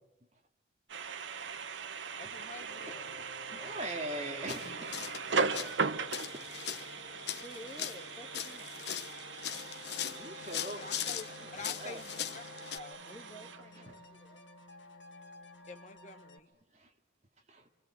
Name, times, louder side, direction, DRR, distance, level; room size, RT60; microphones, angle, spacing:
sound 1, 0.9-14.1, right 5 dB, 80° right, 1.0 m, -39 dB
voice 1, 2.2-3.1 10.7-13.0 15.7-16.5, left 3 dB, 40° left, 8 dB, 1.3 m, -48 dB
sound 2, 2.7-16.4, left 2 dB, 85° left, 2.6 m, -53 dB
voice 2, 3.2-4.9 6.5-6.6 10.0-10.8 11.4-12.0 13.7-14.0 16.7-16.9 17.5-17.7, right 1 dB, 35° right, 3 dB, 2.6 m, -42 dB
sound 3, 4.5-12.8, left 9 dB, 65° left, 0.9 m, -41 dB
voice 3, 7.4-8.8 13.1-14.5, equal, 20° left, 4 dB, 2.0 m, -51 dB
27.5 x 26.5 x 7.7 m, 0.86 s
head